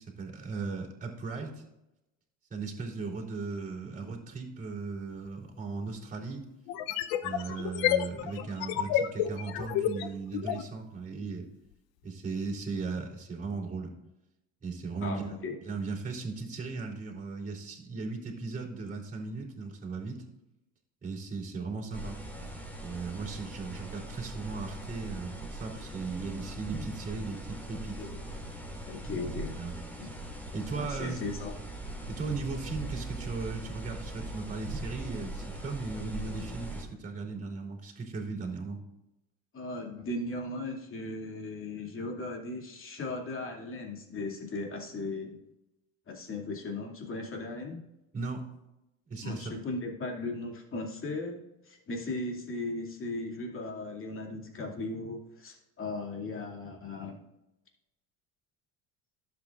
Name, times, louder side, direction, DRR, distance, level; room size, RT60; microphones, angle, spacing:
voice 1, 0.0-1.6 2.5-6.4 7.2-11.5 12.0-13.9 14.6-15.3 15.6-20.2 21.0-22.2 22.8-28.0 29.6-29.8 30.5-31.2 32.1-38.8 48.1-48.4 49.1-49.5, right 4 dB, 20° right, -6 dB, 3.7 m, -37 dB
sound 1, 5.3-5.4 6.7-10.7, left 11 dB, 75° left, 0.8 m, -30 dB
voice 2, 15.0-15.6 28.0-28.2 28.8-29.7 30.0-30.1 30.7-31.5 39.5-45.4 46.1-47.8 49.2-57.2, left 2 dB, 35° left, 1 dB, 2.5 m, -37 dB
sound 2, 21.9-36.8, right 1 dB, 5° left, 2.6 m, -40 dB
12.0 x 8.0 x 2.5 m, 0.90 s
supercardioid pair, 95°, 37 cm